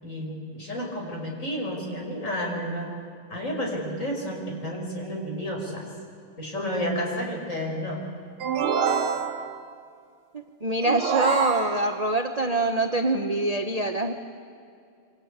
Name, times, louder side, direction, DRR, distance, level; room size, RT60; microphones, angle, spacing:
voice 1, 0.0-2.9 3.3-5.8 6.4-8.0, equal, 35° left, 0 dB, 5.8 m, -31 dB
sound 1, 8.4-9.7 10.8-12.1, right 7 dB, 80° right, 2.1 m, -27 dB
voice 2, 10.3-14.1, right 2 dB, 25° right, 5 dB, 0.8 m, -25 dB
28.0 x 25.0 x 8.3 m, 2.4 s
omnidirectional pair, 2.4 m